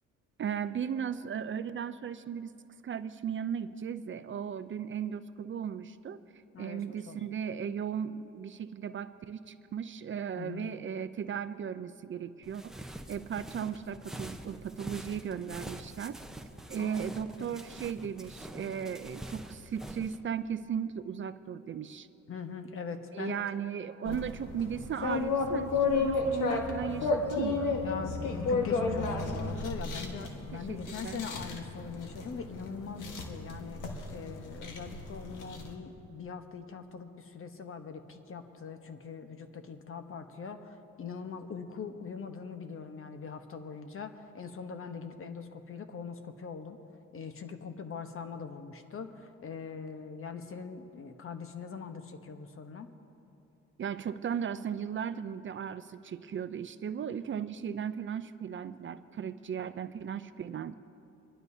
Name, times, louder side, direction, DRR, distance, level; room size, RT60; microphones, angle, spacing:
voice 1, 0.4-2.5 2.8-6.2 6.6-16.2 16.7-22.1 23.1-27.8 30.5-31.2 53.8-60.7, right 8 dB, 40° right, 12 dB, 0.5 m, -36 dB
voice 2, 6.5-7.2 10.3-10.7 16.8-17.5 22.3-23.4 24.0-24.3 27.8-33.8 34.1-46.8 47.1-52.9, left 5 dB, 45° left, 7 dB, 1.1 m, -42 dB
sound 1, 12.4-20.2, right 1 dB, ahead, 0.8 m, -45 dB
sound 2, 24.1-35.7, left 4 dB, 85° left, 1.5 m, -33 dB
25.5 x 12.0 x 2.8 m, 2.7 s
cardioid pair, 90°, 30 cm